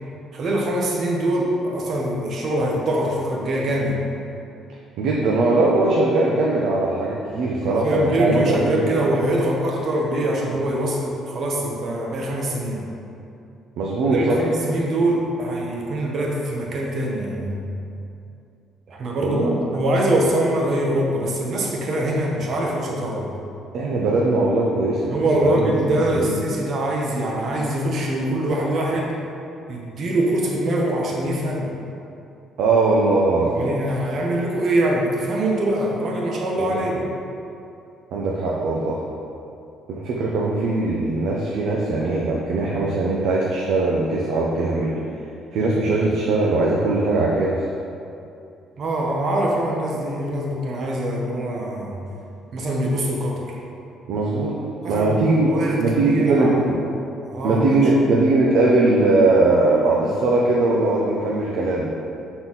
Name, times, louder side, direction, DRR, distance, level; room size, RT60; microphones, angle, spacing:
voice 1, 0.3-4.0 7.6-12.8 14.1-17.6 18.9-23.3 25.1-29.1 29.7-31.7 33.5-37.0 48.8-51.9 52.5-53.6 54.8-56.8 57.2-57.8, right 1 dB, 50° right, -1 dB, 0.9 m, -23 dB
voice 2, 5.0-8.8 13.8-14.4 19.2-19.7 23.7-25.1 25.4-25.7 26.2-26.4 32.6-33.7 36.6-36.7 38.1-39.0 39.9-44.9 45.5-47.6 54.1-54.6 54.9-56.7 57.4-61.9, right 2 dB, 75° right, -3 dB, 0.6 m, -20 dB
6.1 x 3.9 x 3.9 m, 2.6 s
cardioid pair, 120°, 0 cm